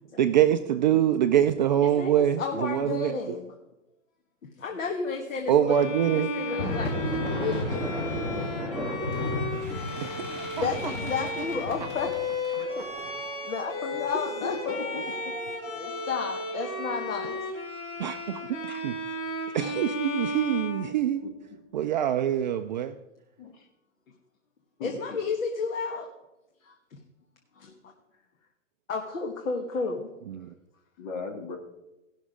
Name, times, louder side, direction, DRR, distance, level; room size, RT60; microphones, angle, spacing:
voice 1, 0.2-3.2 5.5-6.3 9.9-10.9 12.5-12.7 18.0-19.0 19.5-21.2 21.7-22.9 30.3-30.5, right 10 dB, 40° right, 8 dB, 0.4 m, -25 dB
voice 2, 1.8-3.5 4.4-5.8 6.1-8.1 10.6-12.1 12.8-12.9 13.4-14.8 15.7-17.4 24.8-26.1 26.6-27.0 27.5-27.9 28.9-30.1, left 4 dB, 85° left, 2 dB, 1.5 m, -32 dB
Bowed string instrument, 5.7-21.5, left 1 dB, 65° left, 4.6 m, -34 dB
sound 1, 6.4-17.0, left 1 dB, 5° left, 2.7 m, -35 dB
voice 3, 14.1-15.3 21.2-21.3 23.4-23.7 24.8-25.2 31.0-31.6, left 4 dB, 40° left, 3 dB, 2.1 m, -37 dB
17.0 x 6.2 x 4.9 m, 0.96 s
hypercardioid pair, 145°, 39 cm